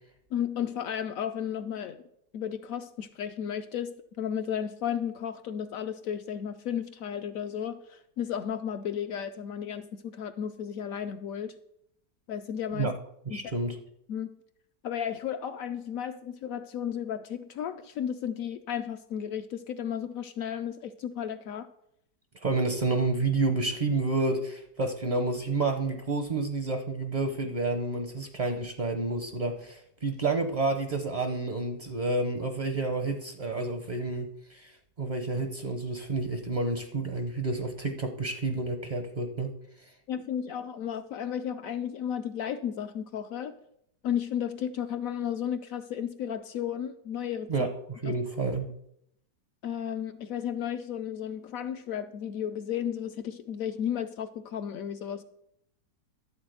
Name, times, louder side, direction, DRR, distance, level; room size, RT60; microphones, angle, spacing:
voice 1, 0.3-2.0 2.3-11.5 12.3-12.9 13.3-13.5 14.1-14.4 14.8-21.7 40.1-43.5 44.0-47.7 49.6-55.2, left 9 dB, 70° left, 9 dB, 0.8 m, -33 dB
voice 2, 13.3-13.8 22.4-39.5 47.5-48.7, right 3 dB, 45° right, 6 dB, 0.6 m, -30 dB
12.0 x 4.1 x 7.8 m, 0.74 s
omnidirectional pair, 1.8 m